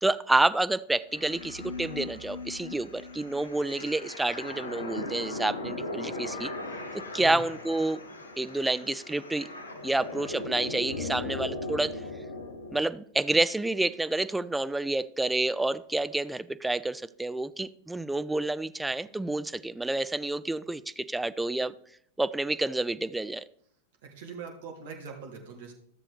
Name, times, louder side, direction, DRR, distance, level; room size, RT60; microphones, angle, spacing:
voice 1, 0.0-6.5 7.1-8.0 8.4-9.5 9.8-12.0 12.7-21.7 22.2-23.4, right 2 dB, 5° right, 14 dB, 0.3 m, -29 dB
sound 1, 1.1-12.8, left 2 dB, 75° left, 1.0 m, -38 dB
voice 2, 24.0-25.7, right 5 dB, 55° right, 1 dB, 1.8 m, -42 dB
13.0 x 7.0 x 3.4 m, 0.67 s
figure-of-eight pair, 90°, 0 cm